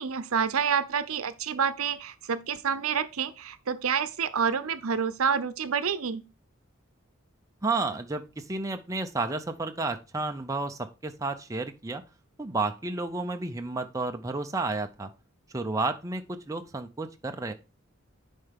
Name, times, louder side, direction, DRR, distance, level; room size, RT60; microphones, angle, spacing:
voice 1, 0.0-6.2, right 7 dB, 85° right, 0.7 m, -28 dB
voice 2, 7.6-12.0 12.4-15.1 15.5-17.5, right 3 dB, 15° right, 0.5 m, -31 dB
10.0 x 4.5 x 3.5 m
head